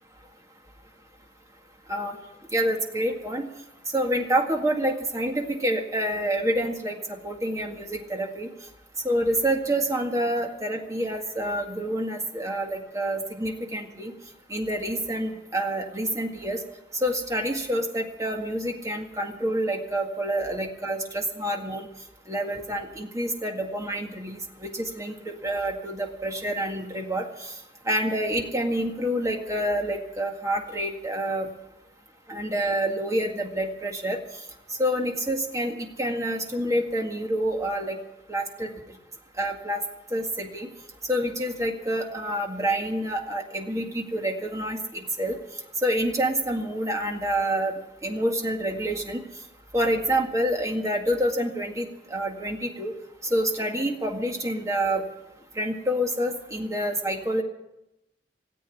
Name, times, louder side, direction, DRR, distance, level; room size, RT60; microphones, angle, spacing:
voice 1, 2.5-3.4 3.9-7.0 7.2-8.5 9.0-14.1 14.5-16.6 17.0-21.9 22.3-27.5 27.9-31.5 32.3-34.2 34.8-38.0 38.3-38.7 39.4-39.8 40.1-40.7 41.1-45.4 45.8-49.2 49.7-52.9 53.3-55.0 55.6-57.4, right 1 dB, 20° right, 2 dB, 1.9 m, -27 dB
17.5 x 8.3 x 9.8 m, 0.90 s
head